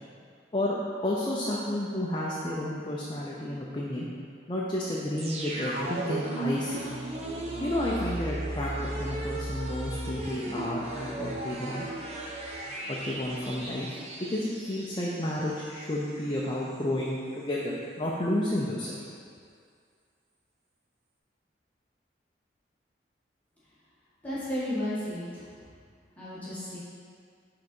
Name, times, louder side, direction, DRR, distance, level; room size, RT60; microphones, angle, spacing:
voice 1, 1.0-4.1 4.5-6.9 7.6-11.8 12.9-13.9 14.2-18.9, left 1 dB, 25° left, -5 dB, 0.5 m, -31 dB
sound 1, 5.2-16.0 16.3-16.4, right 2 dB, 35° right, 0.7 m, -36 dB
voice 2, 24.2-25.4 26.2-26.8, left 1 dB, 10° left, -12 dB, 1.5 m, -33 dB
5.6 x 3.9 x 5.3 m, 2.2 s
head